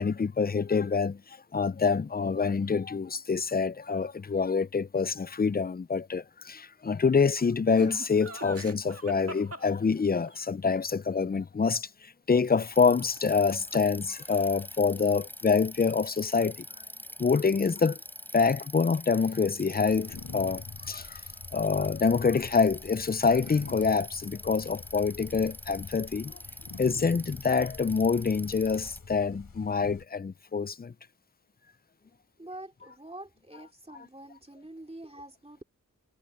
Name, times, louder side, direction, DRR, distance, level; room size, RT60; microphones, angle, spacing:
voice 1, 0.0-16.6 17.2-18.0 18.3-21.2 21.5-26.4 26.8-30.9 33.9-34.1, left 5 dB, 25° left, 0.4 m, -26 dB
Laughter, 7.7-10.4 13.2-14.0 14.2-14.8, right 2 dB, 40° right, 2.1 m, -42 dB
Bicycle, 12.7-29.0, equal, 5° left, 3.9 m, -45 dB
sound 1, 19.9-30.1, left 4 dB, 75° left, 4.8 m, -46 dB
voice 2, 32.4-35.6, right 1 dB, 15° right, 2.9 m, -46 dB
wide cardioid pair, 50°, 35 cm